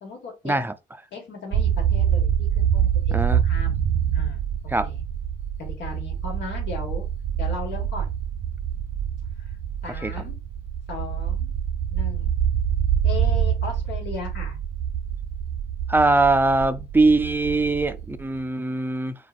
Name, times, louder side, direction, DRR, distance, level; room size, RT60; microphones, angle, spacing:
voice 1, 0.0-0.6 1.1-3.2 3.4-3.8 4.1-4.4 4.8-5.0 5.6-7.1 7.4-8.1 9.4-9.6 9.8-10.4 10.9-11.5 11.9-12.3 13.0-14.6, left 4 dB, 70° left, 1.5 m, -37 dB
sound 1, 1.5-18.4, right 9 dB, 75° right, 0.6 m, -25 dB
voice 2, 15.9-19.2, right 2 dB, 10° right, 0.4 m, -21 dB
3.8 x 2.5 x 2.4 m
supercardioid pair, 70°, 19 cm